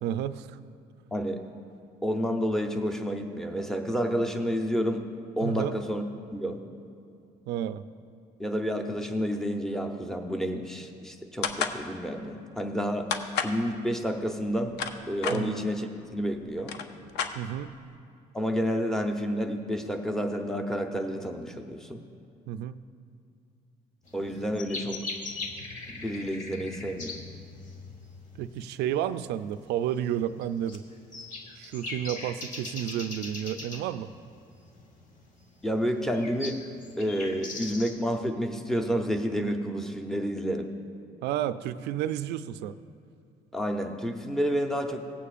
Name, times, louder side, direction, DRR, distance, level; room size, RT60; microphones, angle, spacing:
voice 1, 0.0-0.6 5.4-5.7 7.5-7.8 15.3-15.6 17.3-17.7 22.5-22.8 28.4-30.8 31.6-34.1 41.2-42.7, right 11 dB, 80° right, 12 dB, 0.4 m, -31 dB
voice 2, 1.1-1.4 2.0-5.1 5.4-6.0 6.3-6.6 8.4-13.1 13.4-14.8 15.1-16.7 18.3-22.0 24.1-25.1 25.9-27.2 35.6-36.6 37.0-40.7 43.5-45.1, equal, 5° left, 4 dB, 0.8 m, -30 dB
sound 1, 11.4-11.8 13.1-13.6 14.5-15.4 16.2-16.3 16.6-17.8, left 7 dB, 80° left, 0.6 m, -31 dB
sound 2, 24.1-38.2, left 3 dB, 50° left, 1.3 m, -41 dB
17.5 x 8.4 x 2.5 m, 2.5 s
cardioid pair, 110°, 17 cm